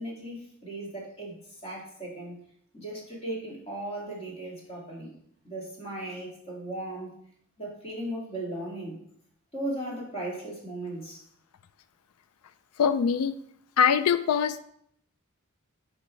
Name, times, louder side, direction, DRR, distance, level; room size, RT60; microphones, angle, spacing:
voice 1, 0.0-2.4 2.7-5.1 5.4-7.1 7.6-9.0 9.5-11.2, right 1 dB, 30° left, -3 dB, 2.1 m, -37 dB
voice 2, 12.8-13.3 13.8-14.6, left 7 dB, 75° left, 12 dB, 0.4 m, -23 dB
9.4 x 5.1 x 3.1 m, 0.69 s
head